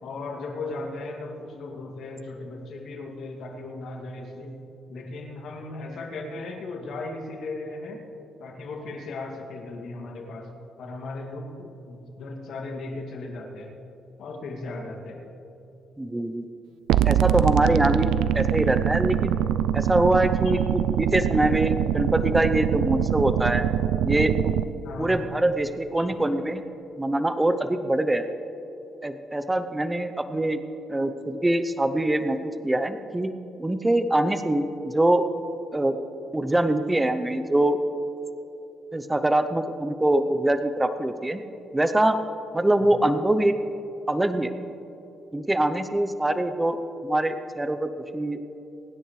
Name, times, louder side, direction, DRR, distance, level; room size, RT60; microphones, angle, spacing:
voice 1, 0.0-4.6 4.9-8.0 8.4-10.5 10.8-13.7 14.2-15.2 20.4-20.5 24.8-25.3 26.0-26.1 42.8-42.9, left 2 dB, 70° left, 1 dB, 2.3 m, -36 dB
voice 2, 16.0-16.5 17.1-18.1 18.4-19.4 19.7-23.7 24.0-24.6 25.0-26.6 27.0-28.3 29.0-30.6 30.9-33.3 33.6-35.3 35.7-35.9 36.3-37.8 38.9-41.4 41.7-42.2 42.5-43.5 44.1-44.5 45.3-46.8 47.0-48.4, right 1 dB, 15° right, 10 dB, 0.7 m, -24 dB
sound 1, 16.9-24.6, right 10 dB, 85° right, 0.3 m, -24 dB
24.5 x 9.9 x 3.2 m, 2.9 s
cardioid pair, 90°, 0 cm